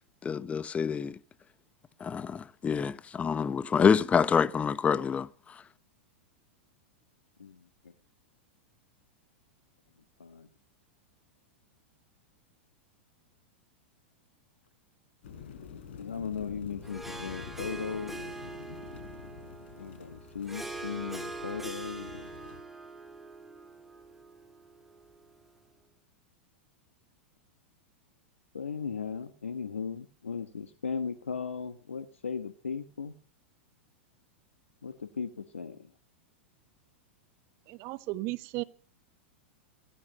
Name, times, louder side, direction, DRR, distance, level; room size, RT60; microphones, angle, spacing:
voice 1, 0.2-1.2 2.0-5.3, left 6 dB, 20° left, 0.9 m, -26 dB
voice 2, 7.4-7.9 10.2-10.5 15.9-18.5 19.8-22.3 28.5-33.1 34.8-35.9, left 6 dB, 85° left, 1.2 m, -37 dB
sound 1, 15.2-22.6, left 7 dB, 65° left, 5.3 m, -47 dB
Harp, 16.8-25.5, right 2 dB, 5° right, 3.0 m, -43 dB
voice 3, 37.7-38.6, right 20 dB, 45° right, 1.0 m, -35 dB
17.0 x 14.5 x 5.2 m
hypercardioid pair, 100°, 7 cm